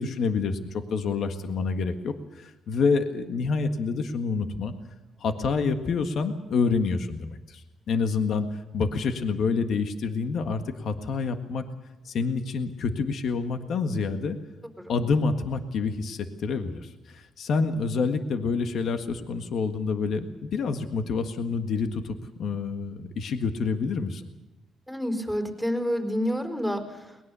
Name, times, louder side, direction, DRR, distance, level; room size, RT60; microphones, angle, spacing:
voice 1, 0.0-4.7 5.2-11.6 12.0-14.4 14.9-24.3, left 4 dB, 65° left, 7 dB, 1.6 m, -28 dB
voice 2, 24.9-27.2, equal, 5° left, 5 dB, 4.3 m, -29 dB
22.5 x 20.0 x 6.9 m, 1.0 s
cardioid pair, 90°, 0 cm